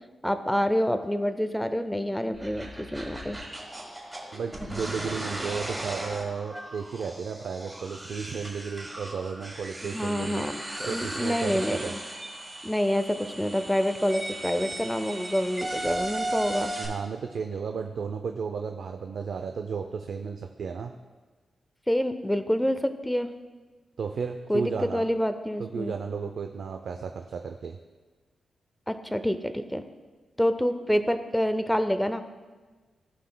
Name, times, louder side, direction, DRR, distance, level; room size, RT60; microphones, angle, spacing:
voice 1, 0.2-3.4 9.8-12.0 12.6-16.7 21.9-23.3 24.5-25.9 28.9-29.8 30.4-32.2, equal, 5° left, 9 dB, 0.4 m, -27 dB
sound 1, 2.3-16.9, right 1 dB, 15° right, 1.7 m, -37 dB
voice 2, 4.3-10.5 10.9-11.9 16.8-20.9 24.0-25.0 25.6-27.8, right 6 dB, 65° right, 5 dB, 0.4 m, -33 dB
16.0 x 5.7 x 2.2 m, 1.3 s
wide cardioid pair, 155°, 0 cm